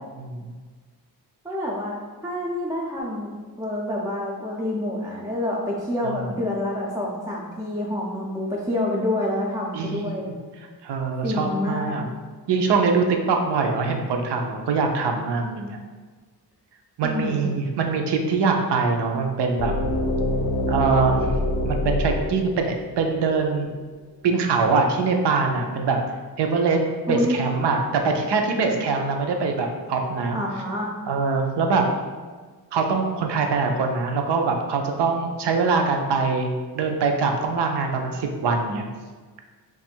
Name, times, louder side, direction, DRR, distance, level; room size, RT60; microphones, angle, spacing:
voice 1, 0.2-0.5 6.0-6.2 9.7-10.3 10.8-12.1 12.5-15.8 17.0-19.7 20.7-21.3 21.6-23.7 24.2-26.0 26.4-30.4 31.1-31.8 32.7-38.8, right 4 dB, 85° right, 3 dB, 0.6 m, -23 dB
voice 2, 1.4-2.0 2.2-10.3 11.2-11.9 17.0-17.5 27.1-27.4 30.3-30.9, left 1 dB, 10° right, -4 dB, 0.3 m, -27 dB
sound 1, 19.6-23.5, left 1 dB, 65° left, 0.5 m, -25 dB
3.0 x 2.4 x 4.3 m, 1.4 s
wide cardioid pair, 160°, 40 cm